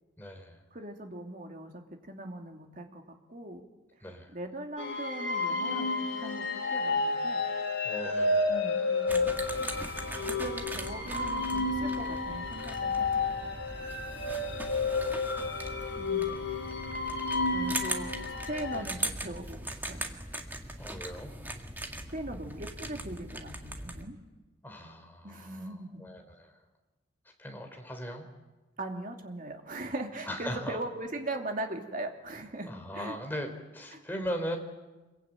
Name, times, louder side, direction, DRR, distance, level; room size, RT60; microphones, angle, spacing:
voice 1, 0.2-0.6 4.0-4.3 7.8-8.5 14.3-15.7 18.7-18.9 20.8-21.3 24.6-26.6 27.4-28.2 30.3-30.8 32.7-34.6, equal, 10° left, 3 dB, 3.5 m, -39 dB
voice 2, 0.7-3.6 4.3-6.4 6.7-7.4 8.5-9.6 10.2-13.1 13.4-13.6 16.0-16.4 17.5-18.1 18.5-20.1 22.1-24.2 25.2-26.0 28.8-33.2 33.9-34.0, right 1 dB, 40° right, 3 dB, 2.8 m, -40 dB
sound 1, 4.8-18.8, left 3 dB, 65° left, 3.9 m, -31 dB
sound 2, 9.1-24.0, right 1 dB, 10° right, 1.8 m, -40 dB
26.5 x 22.5 x 9.1 m, 1.2 s
head